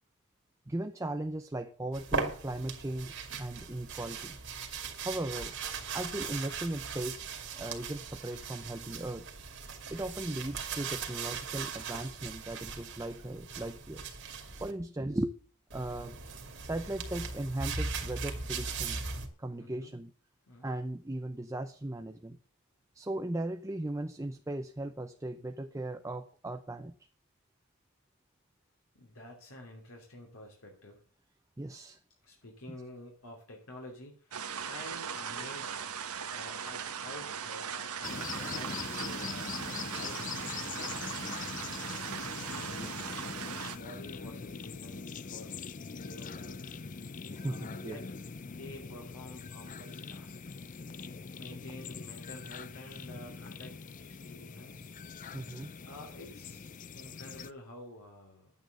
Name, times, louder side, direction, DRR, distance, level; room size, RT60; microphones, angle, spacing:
voice 1, 0.7-3.1 3.4-4.4 5.0-5.5 5.9-7.2 7.5-9.3 9.9-14.0 14.6-15.4 15.7-16.2 16.6-19.1 19.4-20.1 20.6-22.4 22.9-26.9 31.6-32.0 42.8-42.9 47.3-48.0 55.3-55.7, right 1 dB, 15° right, 7 dB, 0.6 m, -37 dB
sound 1, 1.9-14.7 15.7-19.3, right 5 dB, 55° right, 2.4 m, -39 dB
voice 2, 19.6-20.0 20.5-20.8 28.9-31.1 32.2-35.8 36.3-41.4 42.1-43.0 43.7-46.8 47.5-48.0 48.4-50.4 51.3-53.8 54.1-54.9 55.8-56.6 56.9-58.5, left 1 dB, 65° left, -1 dB, 2.9 m, -49 dB
sound 2, 34.3-43.8, right 7 dB, 90° right, 1.4 m, -39 dB
sound 3, 38.0-57.5, left 5 dB, 35° left, 0.5 m, -42 dB
11.0 x 9.1 x 6.7 m, 0.41 s
head